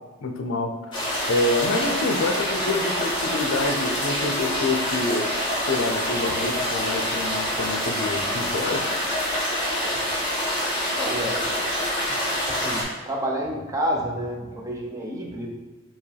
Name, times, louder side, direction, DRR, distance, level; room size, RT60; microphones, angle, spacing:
voice 1, 0.2-1.0 1.3-5.3 5.7-8.9, left 2 dB, 65° left, 4 dB, 0.5 m, -27 dB
sound 1, 0.9-12.8, equal, 25° left, 1.4 m, -26 dB
voice 2, 11.0-11.4 12.5-15.5, equal, 15° right, -1 dB, 0.5 m, -29 dB
4.5 x 2.9 x 3.3 m, 1.3 s
head